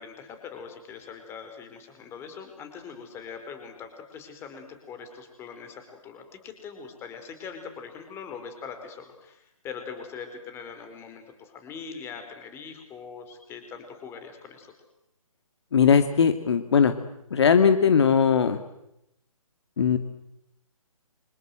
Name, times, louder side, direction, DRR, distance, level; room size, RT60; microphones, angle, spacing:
voice 1, 0.0-14.7, left 6 dB, 15° left, 7 dB, 4.6 m, -42 dB
voice 2, 15.7-16.9 17.3-18.6 19.8-20.0, left 6 dB, 50° left, 9 dB, 2.3 m, -19 dB
27.5 x 26.0 x 7.9 m, 0.81 s
figure-of-eight pair, 145°, 18 cm